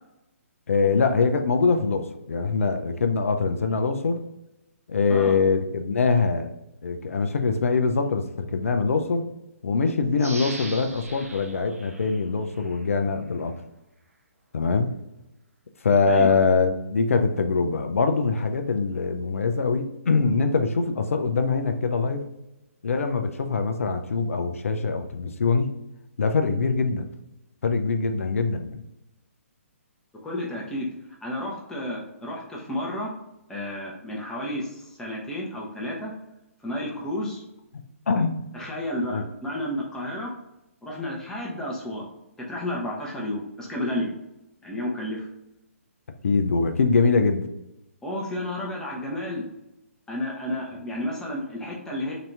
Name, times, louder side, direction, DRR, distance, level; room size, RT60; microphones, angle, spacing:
voice 1, 0.7-4.2 4.9-6.5 6.8-9.3 9.6-13.5 14.5-14.9 15.8-22.2 22.8-25.7 26.2-27.1 27.6-28.8 37.7-38.4 39.1-39.3 46.2-47.5, left 4 dB, 65° left, 7 dB, 0.5 m, -23 dB
sound 1, 10.2-12.9 13.3-13.4, right 2 dB, 80° right, 0.8 m, -40 dB
voice 2, 16.1-16.5 30.2-30.9 31.2-33.1 33.5-36.1 36.6-37.4 38.5-40.3 40.8-42.1 42.4-44.1 44.6-45.3 48.0-49.5 50.1-52.1, left 1 dB, 5° left, -3 dB, 0.9 m, -31 dB
3.9 x 2.8 x 3.4 m, 0.91 s
figure-of-eight pair, 135°, 8 cm